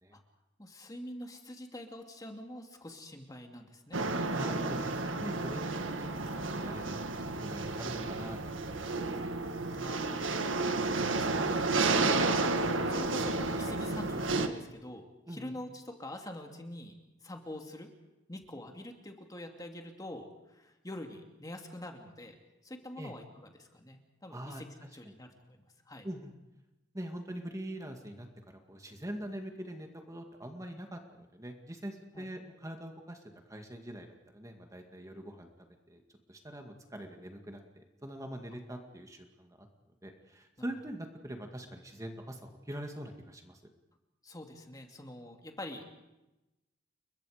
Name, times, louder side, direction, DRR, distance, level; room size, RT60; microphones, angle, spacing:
voice 1, 0.6-4.0 9.7-10.6 10.9-12.3 12.9-16.9 17.2-17.9 18.3-22.4 22.6-26.1 32.1-32.3 44.2-45.9, left 1 dB, 20° left, 3 dB, 2.5 m, -45 dB
sound 1, 3.9-14.5, right 3 dB, 90° right, 1.6 m, -31 dB
voice 2, 4.3-9.1 15.3-15.5 23.0-23.1 24.3-24.6 26.0-26.3 26.9-33.2 33.5-36.0 36.3-39.7 40.0-43.6, right 1 dB, 15° right, 4 dB, 2.1 m, -43 dB
30.0 x 23.0 x 5.1 m, 0.98 s
head